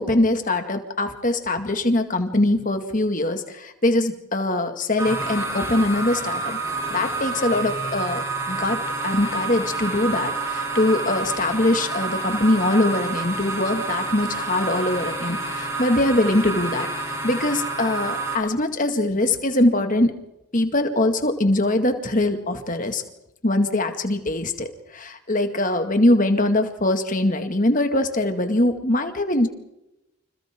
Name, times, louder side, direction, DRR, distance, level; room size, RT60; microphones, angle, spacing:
voice 1, 0.0-6.6 6.9-20.1 20.5-23.0 23.4-29.5, left 1 dB, 40° left, 6 dB, 2.1 m, -22 dB
sound 1, 5.0-18.3, right 3 dB, 15° right, 6.1 m, -28 dB
29.5 x 26.5 x 3.8 m, 0.92 s
head